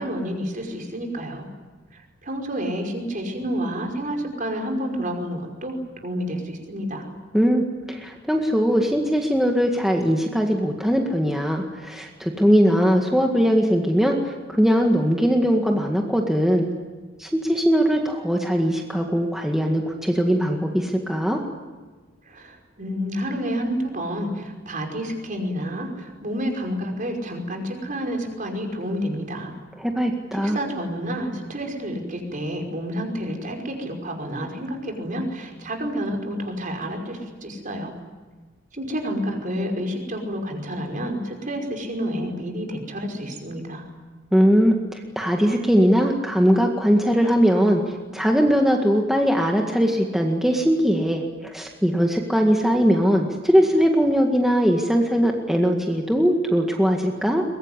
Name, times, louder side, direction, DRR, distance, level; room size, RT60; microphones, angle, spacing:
voice 1, 0.0-1.5 1.9-7.1 22.3-29.5 30.3-37.9 38.7-43.9, equal, 45° right, 3 dB, 5.4 m, -29 dB
voice 2, 7.3-16.7 17.2-21.4 29.8-30.6 44.3-57.4, equal, ahead, 1 dB, 2.0 m, -20 dB
23.0 x 22.0 x 9.9 m, 1.4 s
head